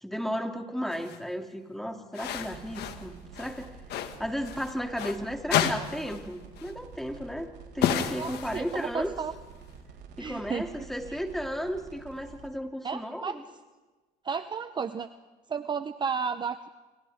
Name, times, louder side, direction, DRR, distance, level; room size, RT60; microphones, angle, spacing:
voice 1, 0.0-3.7 4.2-9.1 10.2-13.4, equal, ahead, 3 dB, 2.7 m, -34 dB
sound 1, 0.9-1.2 2.1-3.1 3.3-5.2 5.5-6.3 6.6-6.7 7.8-9.0, left 9 dB, 75° left, 1.8 m, -31 dB
sound 2, 2.2-12.5, right 6 dB, 90° right, 4.0 m, -49 dB
voice 2, 8.2-9.3 10.2-10.7 11.1-11.2 12.8-13.4 14.2-15.1 15.5-16.7, right 6 dB, 25° right, 10 dB, 0.7 m, -33 dB
29.5 x 29.0 x 3.6 m, 1.3 s
cardioid pair, 110°, 17 cm